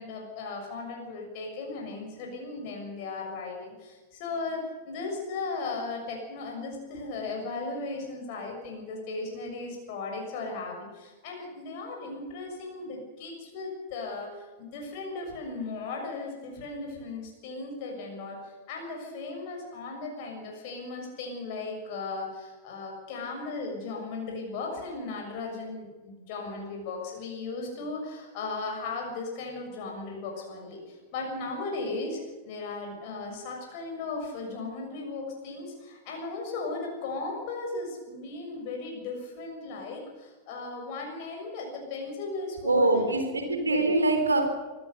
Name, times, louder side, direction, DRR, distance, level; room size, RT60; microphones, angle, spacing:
voice 1, 0.0-32.2 32.4-43.1 43.4-43.9, left 3 dB, 45° left, 1 dB, 6.8 m, -36 dB
voice 2, 42.6-44.4, right 2 dB, 80° right, 6 dB, 3.8 m, -24 dB
24.5 x 17.0 x 6.9 m, 1.2 s
figure-of-eight pair, 90°, 0 cm